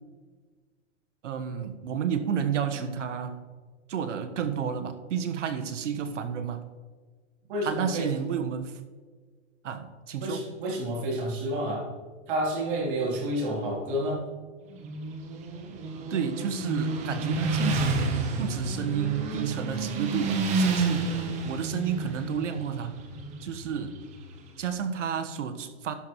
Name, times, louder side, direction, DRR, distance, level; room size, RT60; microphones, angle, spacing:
voice 1, 1.2-3.4 3.9-6.7 7.6-8.8 9.6-10.5 16.1-21.1 21.4-23.0 23.4-24.0 24.6-25.9, right 7 dB, 80° right, 8 dB, 1.3 m, -31 dB
voice 2, 7.5-8.1 10.2-11.8 12.3-14.2, right 1 dB, 45° right, -2 dB, 3.4 m, -29 dB
Motorcycle, 14.7-24.5, right 3 dB, 20° right, 1.0 m, -30 dB
12.0 x 9.9 x 3.1 m, 1.5 s
hypercardioid pair, 160°, 36 cm